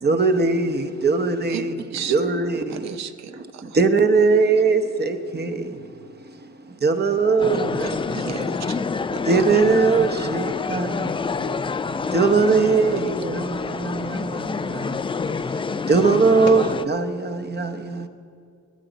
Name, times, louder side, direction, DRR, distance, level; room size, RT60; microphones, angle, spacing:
voice 1, 0.0-3.0 3.6-8.5 9.2-11.1 12.1-18.1, right 4 dB, 35° right, 8 dB, 1.0 m, -21 dB
voice 2, 1.5-2.1 2.7-3.6 7.9-8.8, right 8 dB, 65° right, 11 dB, 0.8 m, -34 dB
voice 3, 7.2-7.7 8.4-9.6 10.8-12.1 12.6-12.7 15.9-16.2 16.4-16.6, left 6 dB, 90° left, 4 dB, 1.6 m, -39 dB
sound 1, 7.4-16.8, left 5 dB, 20° left, 0.3 m, -27 dB
21.0 x 7.9 x 5.1 m, 2.2 s
cardioid pair, 90°, 30 cm